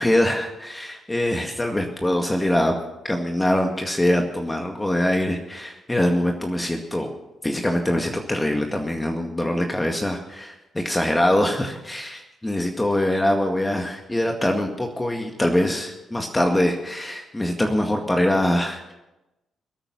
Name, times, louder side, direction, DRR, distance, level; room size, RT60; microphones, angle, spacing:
voice 1, 0.0-2.7 3.0-7.1 7.4-18.9, left 1 dB, 15° left, 3 dB, 2.0 m, -23 dB
20.5 x 9.0 x 6.3 m, 0.96 s
hypercardioid pair, 45°, 0 cm